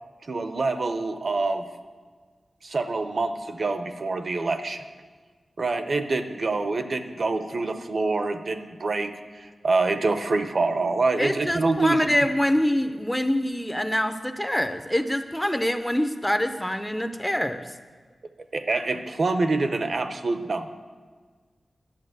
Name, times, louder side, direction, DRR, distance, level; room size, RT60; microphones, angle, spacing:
voice 1, 0.3-1.7 2.6-4.8 5.6-12.1 18.5-20.7, right 3 dB, 50° right, 9 dB, 0.8 m, -26 dB
voice 2, 11.2-17.6, left 1 dB, 5° left, 8 dB, 0.6 m, -25 dB
11.5 x 8.4 x 8.0 m, 1.5 s
wide cardioid pair, 135°, 0 cm